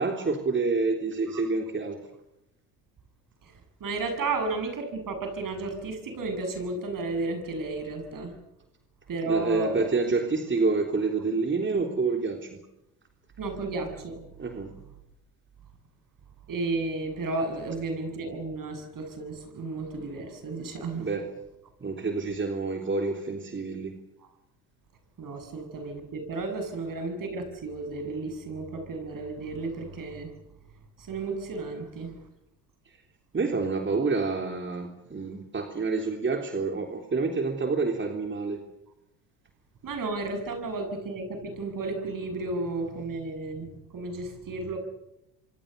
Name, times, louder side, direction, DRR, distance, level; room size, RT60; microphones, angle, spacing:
voice 1, 0.0-2.0 9.2-12.6 14.4-14.7 20.9-21.3 21.8-23.9 33.3-38.6, right 4 dB, 25° right, 4 dB, 3.6 m, -28 dB
voice 2, 3.4-8.3 9.1-9.9 13.4-14.2 16.5-21.1 25.2-30.3 31.0-32.1 39.8-44.8, right 3 dB, 40° right, 6 dB, 7.7 m, -33 dB
26.0 x 25.5 x 6.9 m, 0.85 s
hypercardioid pair, 70°, 47 cm